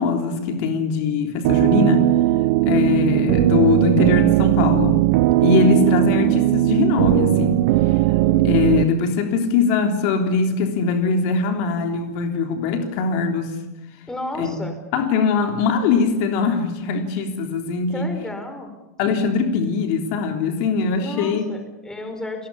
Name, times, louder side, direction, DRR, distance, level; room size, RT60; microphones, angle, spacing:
voice 1, 0.0-2.1 2.7-5.0 5.4-7.6 8.4-13.5 14.4-14.7 14.9-18.1 19.0-21.4, left 5 dB, 55° left, 5 dB, 3.4 m, -21 dB
sound 1, 1.4-8.8, right 16 dB, 60° right, 0.9 m, -18 dB
voice 2, 2.7-3.0 8.2-9.0 14.1-14.8 17.9-18.7 21.0-22.5, left 1 dB, 5° left, 6 dB, 5.0 m, -33 dB
29.5 x 19.0 x 8.6 m, 1.1 s
supercardioid pair, 135°, 8 cm